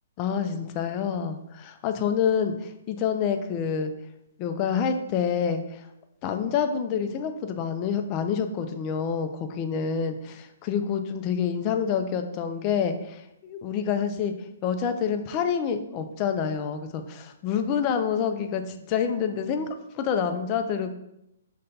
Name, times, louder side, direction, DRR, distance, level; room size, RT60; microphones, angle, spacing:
voice 1, 0.2-3.9 4.4-5.9 6.2-14.3 14.6-19.7 19.9-21.0, left 7 dB, 25° left, 7 dB, 0.3 m, -27 dB
5.3 x 2.2 x 3.9 m, 0.84 s
hypercardioid pair, 165°, 0 cm